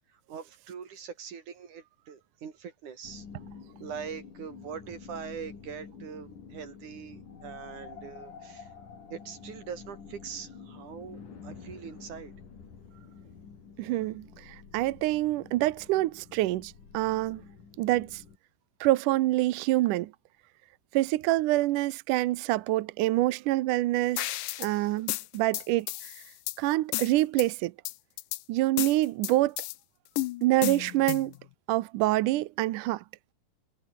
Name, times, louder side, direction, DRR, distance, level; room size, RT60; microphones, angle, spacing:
voice 1, 0.3-3.3 3.8-8.7 9.1-12.3, right 7 dB, 55° right, 4.2 m, -42 dB
sound 1, 3.0-18.4, left 6 dB, 55° left, 5.3 m, -48 dB
voice 2, 13.8-17.4 17.8-18.2 18.8-20.1 20.9-24.3 24.6-26.1 26.6-27.7 28.5-29.6 30.4-31.3 31.7-33.0, right 17 dB, 75° right, 1.9 m, -26 dB
sound 2, 24.2-24.7 25.1-26.6 26.9-27.5 27.9-28.4 28.8-29.8 30.2-31.4, left 18 dB, 80° left, 1.9 m, -33 dB
omnidirectional pair, 4.5 m